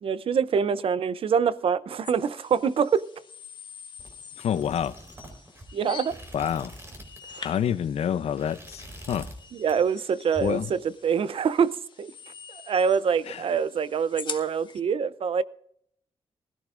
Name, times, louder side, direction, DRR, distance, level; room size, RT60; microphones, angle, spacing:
voice 1, 0.0-3.1 5.7-6.2 7.3-7.5 9.5-12.1 12.5-15.4, right 6 dB, 60° right, 0.6 m, -25 dB
sound 1, 2.0-14.8, left 6 dB, 45° left, 1.3 m, -45 dB
sound 2, 4.0-7.4 7.6-7.9 8.2-9.4 9.7-10.0 10.3-11.3, right 1 dB, 25° right, 4.3 m, -44 dB
voice 2, 4.4-4.9 6.3-6.7 7.4-9.3 10.4-10.7 13.3-13.4, left 9 dB, 80° left, 0.6 m, -27 dB
20.0 x 14.5 x 2.6 m
wide cardioid pair, 145°, 11 cm